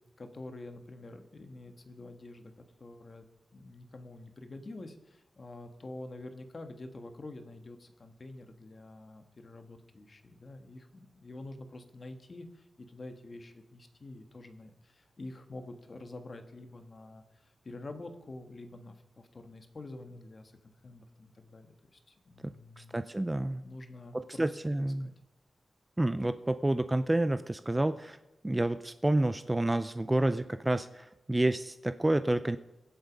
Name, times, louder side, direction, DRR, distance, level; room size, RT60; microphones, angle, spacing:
voice 1, 0.2-3.2 3.5-22.9 23.6-24.5 24.8-25.1, left 2 dB, 35° left, 7 dB, 1.5 m, -47 dB
voice 2, 22.4-23.6 24.1-25.1 26.0-28.2 28.4-32.6, right 1 dB, 15° right, 11 dB, 0.4 m, -29 dB
23.0 x 7.8 x 5.2 m, 0.95 s
wide cardioid pair, 170°, 0 cm